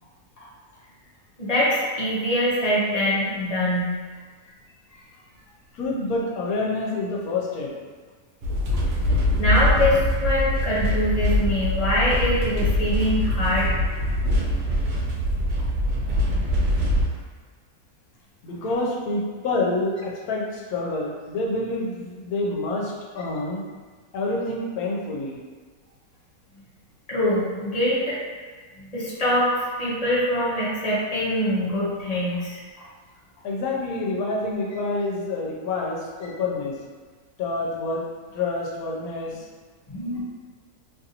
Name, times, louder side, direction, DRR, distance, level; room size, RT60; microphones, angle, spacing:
voice 1, 1.4-3.9 9.4-13.7 27.1-28.2 28.8-29.5 29.8-32.6 39.9-40.2, left 1 dB, 35° left, -8 dB, 0.6 m, -23 dB
voice 2, 5.7-7.7 18.4-23.6 24.1-25.4 33.4-36.7 37.4-38.0 38.3-39.5 40.2-40.3, left 2 dB, 75° left, -3 dB, 1.1 m, -27 dB
sound 1, 8.4-17.1, left 1 dB, 85° right, 1.1 m, -23 dB
2.9 x 2.5 x 2.8 m, 1.5 s
omnidirectional pair, 1.6 m